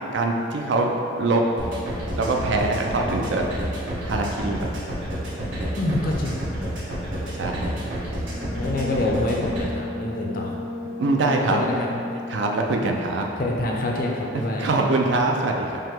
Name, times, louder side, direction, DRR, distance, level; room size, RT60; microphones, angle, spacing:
voice 1, 0.1-1.4 2.1-3.4 3.8-4.7 7.4-7.7 11.0-11.6 11.9-12.0 12.3-13.3 14.3-15.8, right 2 dB, 70° right, 1 dB, 0.4 m, -23 dB
sound 1, 1.6-9.6, equal, 85° right, 1.3 m, -29 dB
voice 2, 5.8-6.3 7.4-7.5 8.6-10.6 11.2-11.9 13.4-14.7, left 2 dB, 45° left, 0 dB, 0.4 m, -26 dB
Brass instrument, 8.1-12.5, left 2 dB, 50° right, 0.8 m, -34 dB
5.4 x 2.0 x 3.6 m, 2.6 s
head